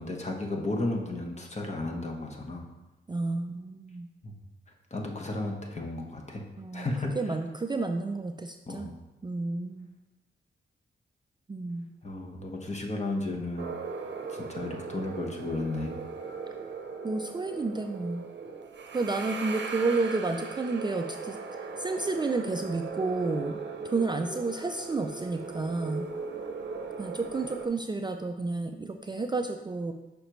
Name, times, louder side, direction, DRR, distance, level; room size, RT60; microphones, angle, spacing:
voice 1, 0.0-2.7 4.2-4.3 4.9-6.4 6.7-7.2 8.7-8.9 12.0-13.7 14.3-15.9, left 2 dB, 35° left, 1 dB, 1.1 m, -33 dB
voice 2, 3.1-4.1 6.6-6.9 7.2-8.9 9.2-9.9 11.5-11.9 17.0-18.2 18.9-21.4 21.8-23.6 23.8-26.1 27.0-29.9, right 3 dB, 20° right, 5 dB, 0.4 m, -31 dB
sound 1, 13.6-27.7, right 4 dB, 65° right, 0.7 m, -38 dB
6.4 x 5.1 x 3.1 m, 1.0 s
cardioid pair, 65°, 20 cm